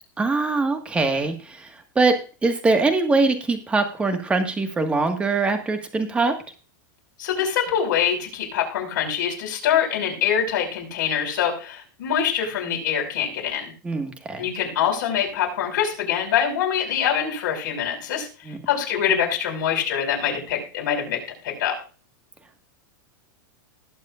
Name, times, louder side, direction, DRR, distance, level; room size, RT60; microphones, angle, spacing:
voice 1, 0.2-2.1 2.4-6.3 13.8-14.4 18.4-18.6, right 3 dB, 10° right, 6 dB, 1.7 m, -22 dB
voice 2, 7.2-13.7 14.4-21.8, left 8 dB, 65° left, 0 dB, 5.7 m, -24 dB
20.0 x 8.2 x 2.5 m, 0.36 s
supercardioid pair, 160°, 11 cm